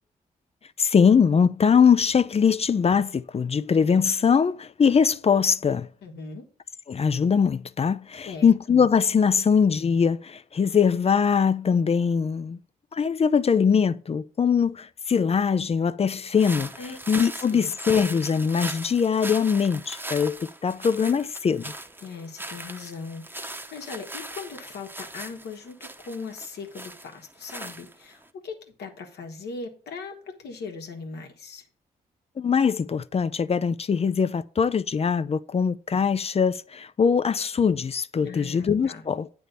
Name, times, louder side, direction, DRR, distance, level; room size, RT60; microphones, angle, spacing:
voice 1, 0.8-5.9 6.9-12.6 12.9-16.7 17.1-21.7 32.4-39.3, left 6 dB, 35° left, 0.5 m, -22 dB
voice 2, 6.0-6.5 8.2-8.5 16.8-17.0 17.3-17.7 22.0-31.6 38.2-39.0, left 4 dB, 75° left, 1.5 m, -39 dB
sound 1, 16.3-28.3, right 1 dB, 10° right, 1.0 m, -39 dB
9.0 x 3.5 x 6.7 m
supercardioid pair, 50°, 17 cm